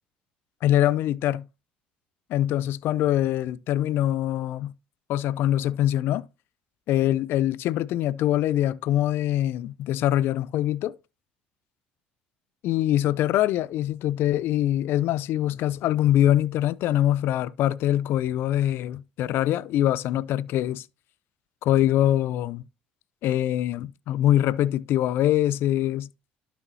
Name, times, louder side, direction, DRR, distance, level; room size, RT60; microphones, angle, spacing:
voice 1, 0.6-1.4 2.3-4.7 5.1-6.3 6.9-11.0 12.6-20.9 21.6-22.6 23.2-26.1, left 12 dB, 65° left, 0.5 m, -23 dB
12.0 x 6.3 x 2.8 m
hypercardioid pair, 70°, 4 cm